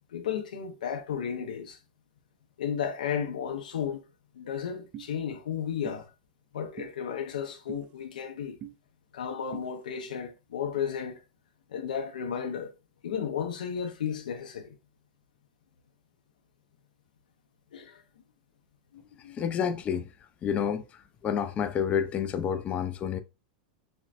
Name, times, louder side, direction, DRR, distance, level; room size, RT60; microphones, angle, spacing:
voice 1, 0.1-1.8 2.6-4.0 4.4-6.1 6.5-8.6 9.1-11.2 11.7-12.7 13.0-14.8 17.7-18.0 18.9-19.4, left 8 dB, 90° left, 0.6 m, -33 dB
sound 1, 4.9-5.1 5.8-6.0 6.8-6.9 7.7-7.8 8.6-8.7 9.5-9.7, right 10 dB, 35° right, 0.5 m, -41 dB
voice 2, 19.4-20.1 20.4-20.8 21.2-23.2, left 8 dB, 30° left, 0.4 m, -29 dB
4.3 x 2.0 x 2.5 m
hypercardioid pair, 120°, 4 cm